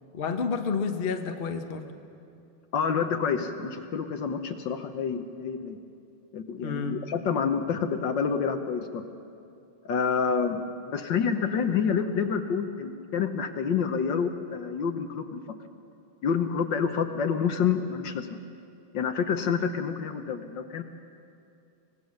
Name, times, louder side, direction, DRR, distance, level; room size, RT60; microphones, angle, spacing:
voice 1, 0.1-1.9 6.6-7.0, left 5 dB, 35° left, 5 dB, 0.9 m, -30 dB
voice 2, 2.7-5.8 6.3-9.0 9.8-15.4 16.2-18.3 18.9-20.8, left 6 dB, 60° left, 7 dB, 1.6 m, -28 dB
24.0 x 19.5 x 6.5 m, 2.6 s
omnidirectional pair, 2.4 m